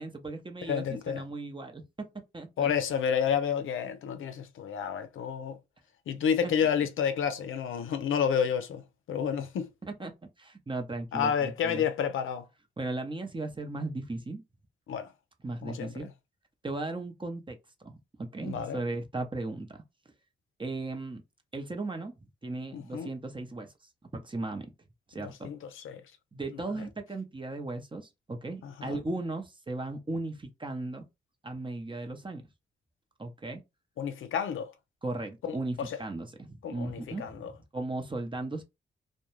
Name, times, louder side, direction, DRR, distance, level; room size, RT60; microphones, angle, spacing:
voice 1, 0.0-2.1 2.3-2.7 9.9-10.1 10.4-11.8 12.8-14.4 15.4-16.1 16.6-19.8 20.6-21.2 21.5-23.7 24.1-24.7 25.1-25.5 26.3-31.0 31.4-32.4 33.2-33.6 35.0-38.6, right 2 dB, 25° right, 0.7 m, -37 dB
voice 2, 0.7-1.2 2.6-5.6 6.1-8.8 9.1-9.7 11.1-12.4 14.9-15.1 15.6-16.1 18.4-18.8 22.7-23.1 25.2-26.0 28.6-29.0 34.0-34.7 35.4-36.0 36.6-37.5, left 7 dB, 70° left, 0.5 m, -30 dB
2.3 x 2.1 x 3.0 m
supercardioid pair, 40°, 21 cm